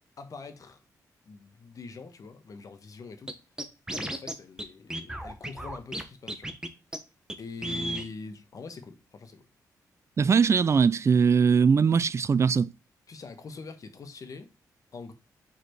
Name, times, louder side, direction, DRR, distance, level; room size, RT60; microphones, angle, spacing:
voice 1, 0.2-0.8 1.2-3.4 3.9-6.5 7.4-9.4 13.1-14.5 14.9-15.1, left 4 dB, 55° left, 1.3 m, -43 dB
Scratching (performance technique), 3.3-3.4 3.6-4.3 4.6-4.7 4.9-6.0 6.3-6.7 6.9-7.0 7.3-7.4 7.6-8.1, right 1 dB, 10° right, 1.2 m, -33 dB
voice 2, 10.2-12.7, right 6 dB, 40° right, 0.4 m, -21 dB
5.0 x 4.4 x 4.5 m
cardioid pair, 65°, 7 cm